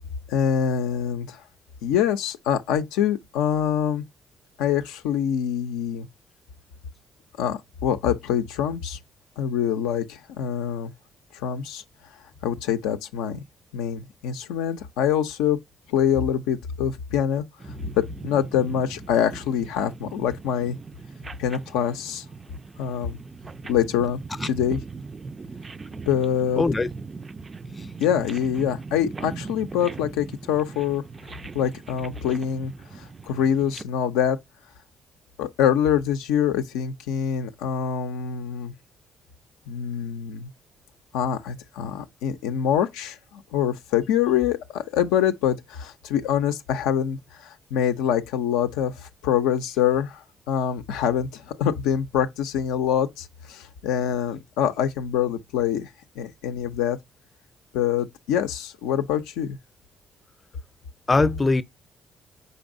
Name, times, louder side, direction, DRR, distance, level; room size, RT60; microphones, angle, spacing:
voice 1, 0.3-1.4 1.8-4.0 4.6-6.1 7.4-9.0 9.4-10.9 11.3-11.8 12.4-13.4 13.7-15.6 15.9-17.4 18.0-20.8 21.4-22.2 22.8-23.2 23.7-24.8 26.1-26.6 28.0-31.0 31.5-34.4 35.4-38.7 39.7-40.5 41.1-55.9 56.2-57.0 57.7-59.6, left 9 dB, 75° left, 0.4 m, -25 dB
sound 1, 17.6-33.8, right 4 dB, 35° right, 0.4 m, -39 dB
voice 2, 26.6-26.9 27.8-27.9 61.1-61.6, left 3 dB, 30° left, 0.6 m, -21 dB
5.2 x 4.1 x 2.5 m
hypercardioid pair, 45°, 0 cm